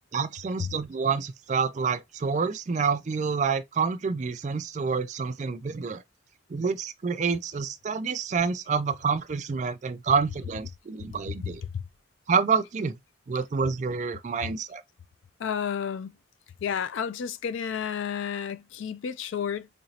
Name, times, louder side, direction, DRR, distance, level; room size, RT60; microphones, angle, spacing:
voice 1, 0.1-6.0 6.5-11.6 12.3-13.0 13.3-14.8, right 5 dB, 35° right, 0.3 m, -28 dB
voice 2, 11.3-11.8 15.4-16.1 16.6-19.7, left 7 dB, 70° left, 0.4 m, -31 dB
4.3 x 2.8 x 2.7 m
head